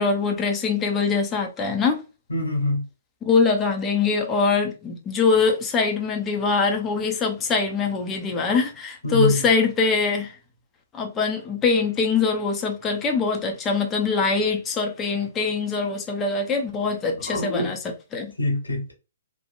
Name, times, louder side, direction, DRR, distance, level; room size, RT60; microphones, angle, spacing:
voice 1, 0.0-2.0 3.2-10.3 10.9-17.8 18.1-18.3, left 4 dB, 20° left, 0.5 m, -23 dB
voice 2, 2.3-2.8 9.0-9.4 17.2-17.7 18.4-18.9, left 1 dB, 85° left, 1.1 m, -24 dB
2.8 x 2.1 x 2.5 m
figure-of-eight pair, 125°, 0 cm